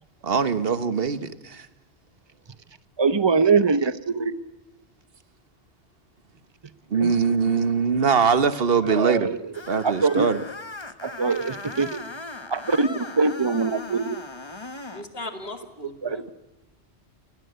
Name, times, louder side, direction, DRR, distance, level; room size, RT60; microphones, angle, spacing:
voice 1, 0.2-1.7 6.9-9.3 9.7-10.4, right 5 dB, 60° right, 12 dB, 1.5 m, -22 dB
voice 2, 3.0-4.4 7.0-7.1 8.9-9.4 9.8-10.3 11.0-12.0 12.5-14.2 16.0-16.2, right 4 dB, 25° right, 13 dB, 1.0 m, -23 dB
Screech, 9.5-15.1, left 3 dB, 25° left, 1.2 m, -38 dB
voice 3, 14.9-16.3, left 2 dB, 60° left, 6 dB, 2.6 m, -37 dB
29.0 x 21.5 x 8.2 m, 1.0 s
omnidirectional pair, 1.1 m